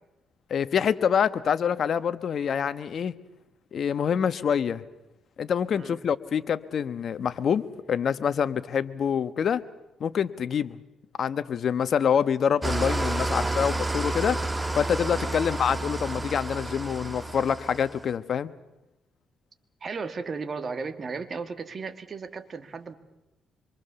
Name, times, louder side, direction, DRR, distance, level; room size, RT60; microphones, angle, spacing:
voice 1, 0.5-3.1 3.7-4.8 5.4-9.6 10.0-10.8 11.2-14.4 14.7-18.5, left 7 dB, 55° left, 13 dB, 1.2 m, -26 dB
Engine starting / Idling, 12.6-18.0, right 2 dB, 15° right, 1.5 m, -30 dB
voice 2, 19.8-22.9, right 4 dB, 40° right, 9 dB, 2.1 m, -35 dB
26.0 x 24.0 x 7.0 m, 0.95 s
cardioid pair, 90°, 0 cm